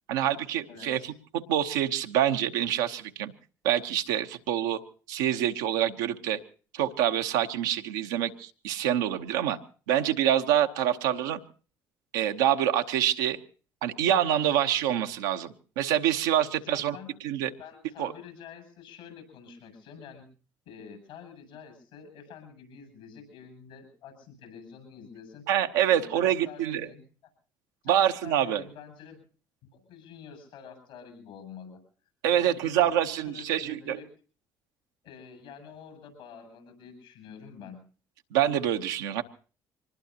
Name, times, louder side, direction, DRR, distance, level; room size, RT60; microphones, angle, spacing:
voice 1, 0.1-3.3 3.6-4.8 5.1-6.4 6.7-9.6 9.9-11.4 12.1-13.4 13.8-17.0 17.2-17.5 18.0-18.1 25.5-26.9 27.9-28.6 32.2-34.0 38.3-39.2, right 11 dB, 85° right, 6 dB, 0.9 m, -26 dB
voice 2, 0.7-1.1 16.6-17.2 17.6-20.3 20.6-25.5 25.9-27.0 27.8-29.2 29.7-31.8 32.3-34.1 35.0-37.8, left 7 dB, 80° left, 6 dB, 7.9 m, -47 dB
24.5 x 20.0 x 2.9 m, 0.38 s
hypercardioid pair, 55°, 10 cm